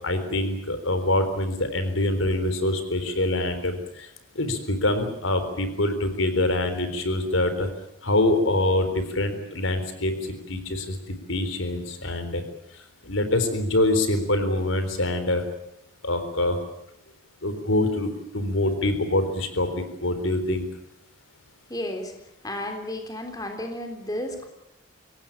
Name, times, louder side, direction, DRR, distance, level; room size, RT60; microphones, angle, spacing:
voice 1, 0.0-4.1 4.3-7.7 8.0-10.1 10.5-11.0 11.3-12.4 13.0-15.4 16.0-16.6 17.4-20.7, left 1 dB, 80° left, 9 dB, 4.0 m, -25 dB
voice 2, 21.7-22.1 22.4-24.5, left 1 dB, 20° left, 4 dB, 3.6 m, -32 dB
24.5 x 18.5 x 8.9 m, 0.80 s
head